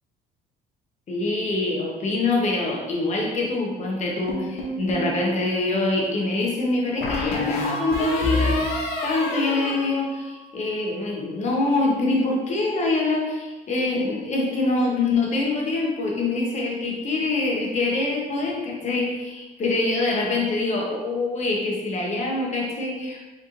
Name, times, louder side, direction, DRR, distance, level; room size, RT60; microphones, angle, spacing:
voice 1, 1.1-23.2, left 2 dB, 45° left, -1 dB, 1.2 m, -25 dB
sound 1, 4.3-5.1 7.0-10.6, left 2 dB, 70° left, 1.0 m, -28 dB
5.2 x 3.5 x 2.7 m, 1.2 s
cardioid pair, 110°, 17 cm